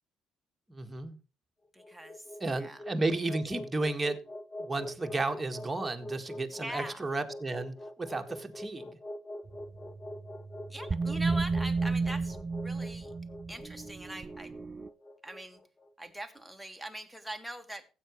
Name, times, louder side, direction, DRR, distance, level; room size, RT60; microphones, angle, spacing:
voice 1, 0.7-1.2 2.4-4.2 4.6-9.0, right 2 dB, 15° right, 4 dB, 1.8 m, -33 dB
sound 1, 1.7-15.9, left 1 dB, 30° left, 1.2 m, -44 dB
voice 2, 1.7-2.3 2.6-2.8 6.6-7.1 10.7-12.4 12.6-13.1 13.5-14.5 15.2-15.6 16.0-17.9, right 1 dB, ahead, 5 dB, 1.8 m, -42 dB
sound 2, 9.5-14.9, right 4 dB, 35° right, 0.4 m, -33 dB
15.5 x 8.4 x 3.1 m, 0.33 s
hypercardioid pair, 60°, 0 cm